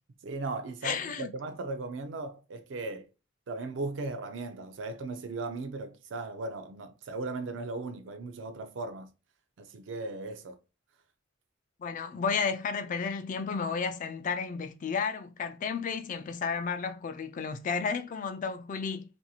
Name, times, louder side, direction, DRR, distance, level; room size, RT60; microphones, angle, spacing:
voice 1, 0.2-3.1 3.5-9.1 9.6-10.6, right 3 dB, 70° right, 0.4 m, -37 dB
voice 2, 0.8-1.3 11.8-19.0, left 5 dB, 40° left, 0.3 m, -32 dB
2.9 x 2.5 x 2.3 m
head